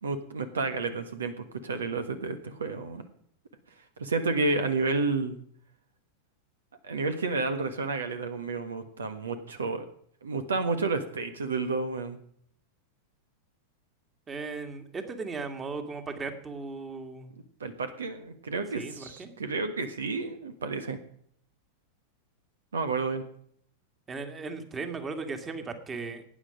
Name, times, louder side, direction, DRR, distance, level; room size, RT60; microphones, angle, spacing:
voice 1, 0.0-3.1 4.0-5.4 6.8-9.8 10.2-12.2 17.6-21.0 22.7-23.2, right 3 dB, 70° right, 8 dB, 1.4 m, -31 dB
voice 2, 14.3-17.3 18.7-19.4 24.1-26.2, right 4 dB, 20° right, 7 dB, 2.0 m, -37 dB
18.0 x 9.7 x 5.2 m, 0.64 s
figure-of-eight pair, 90°, 0 cm